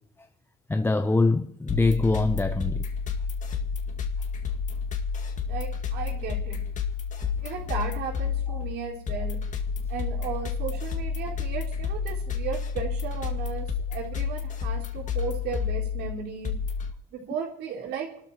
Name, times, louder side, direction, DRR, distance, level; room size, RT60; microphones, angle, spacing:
voice 1, 0.7-2.8, left 3 dB, 15° left, 0.7 m, -23 dB
sound 1, 1.7-16.9, left 6 dB, 45° left, 2.0 m, -30 dB
voice 2, 5.4-6.6 7.4-9.4 9.9-16.6 17.1-18.1, right 7 dB, 85° right, 4.5 m, -35 dB
28.5 x 13.0 x 2.9 m
cardioid pair, 110°, 17 cm